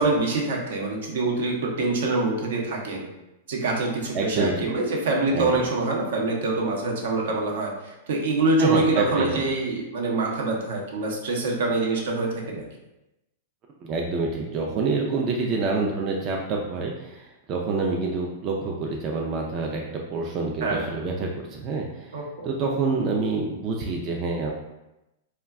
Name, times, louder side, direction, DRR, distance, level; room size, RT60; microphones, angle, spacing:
voice 1, 0.0-3.1 3.5-12.7 20.6-20.9 22.1-22.5, right 2 dB, 75° right, -1 dB, 0.7 m, -25 dB
voice 2, 4.1-4.7 5.3-5.6 8.6-9.4 13.8-22.2 22.4-24.5, right 4 dB, 30° right, -1 dB, 0.3 m, -27 dB
2.2 x 2.2 x 3.5 m, 0.96 s
hypercardioid pair, 140°, 0 cm